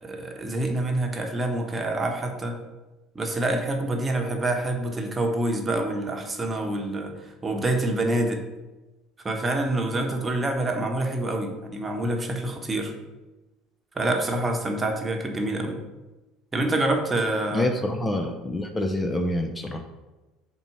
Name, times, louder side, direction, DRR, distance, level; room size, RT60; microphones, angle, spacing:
voice 1, 0.0-2.6 3.1-8.4 9.2-12.9 13.9-15.8 16.5-17.7, right 1 dB, 25° right, 2 dB, 1.0 m, -26 dB
voice 2, 17.5-19.8, left 1 dB, 20° left, 5 dB, 0.6 m, -27 dB
4.4 x 4.0 x 5.6 m, 1.1 s
hypercardioid pair, 70°, 0 cm